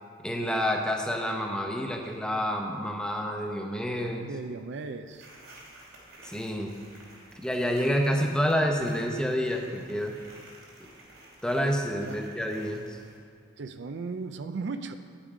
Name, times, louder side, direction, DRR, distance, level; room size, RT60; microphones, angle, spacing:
voice 1, 0.2-4.3 6.2-6.7 7.3-10.1 11.4-13.0, equal, 5° left, 2 dB, 0.8 m, -28 dB
voice 2, 4.2-5.3 12.0-12.2 13.6-15.0, right 4 dB, 60° right, 9 dB, 0.4 m, -36 dB
sound 1, 5.1-13.2, right 1 dB, 85° right, 3.0 m, -52 dB
9.5 x 8.8 x 4.9 m, 2.3 s
head